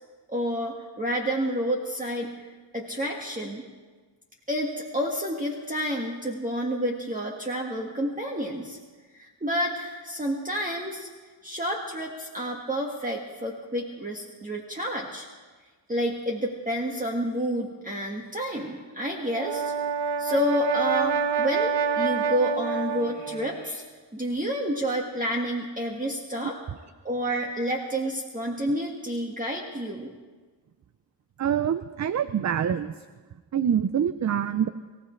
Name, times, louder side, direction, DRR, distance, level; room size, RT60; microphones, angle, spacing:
voice 1, 0.3-2.3 2.7-3.6 4.5-8.8 9.1-11.1 11.4-15.3 15.9-19.7 20.2-23.8 24.1-26.6 27.0-30.1, equal, 20° right, -1 dB, 1.7 m, -29 dB
Brass instrument, 19.2-23.4, right 6 dB, 65° right, 0.9 m, -27 dB
voice 2, 31.4-32.9 33.5-34.7, right 8 dB, 40° right, 12 dB, 0.5 m, -25 dB
24.5 x 15.5 x 3.3 m, 1.4 s
cardioid pair, 80°, 45 cm